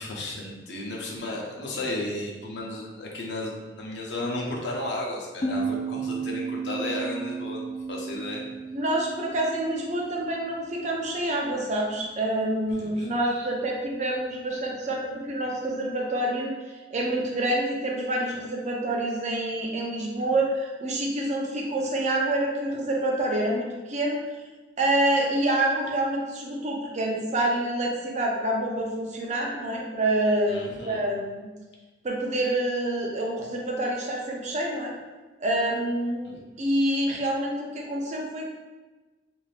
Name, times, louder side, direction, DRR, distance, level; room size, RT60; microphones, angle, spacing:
voice 1, 0.0-8.4 12.7-13.1 30.5-31.0 36.2-36.3, left 1 dB, 85° left, -1 dB, 0.6 m, -34 dB
sound 1, 5.4-10.7, right 4 dB, 35° left, 0.3 m, -34 dB
voice 2, 8.7-24.2 24.8-31.5 32.0-34.9 35.4-38.4, right 1 dB, 40° right, -1 dB, 0.5 m, -27 dB
3.2 x 2.6 x 2.4 m, 1.2 s
head